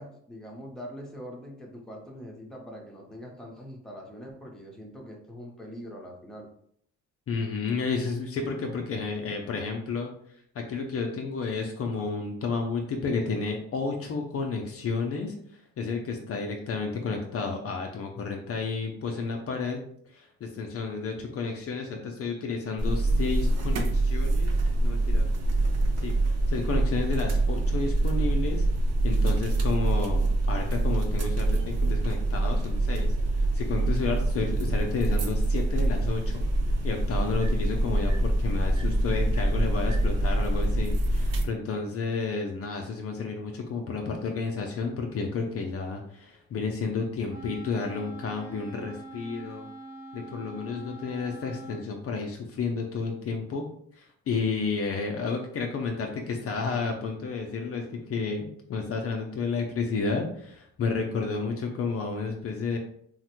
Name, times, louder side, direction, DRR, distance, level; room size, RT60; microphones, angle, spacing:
voice 1, 0.0-6.5, equal, ahead, -1 dB, 0.8 m, -43 dB
voice 2, 7.3-10.1 10.5-19.8 20.1-24.5 24.8-25.3 26.0-28.6 29.0-36.4 36.8-49.7 50.1-53.7 53.9-62.8, left 4 dB, 50° left, 2 dB, 0.5 m, -31 dB
sound 1, 22.8-41.4, right 2 dB, 55° right, 0.6 m, -25 dB
Wind instrument woodwind instrument, 47.3-51.9, right 1 dB, 90° right, 1.4 m, -44 dB
3.1 x 2.1 x 2.9 m, 0.65 s
cardioid pair, 90°, 30 cm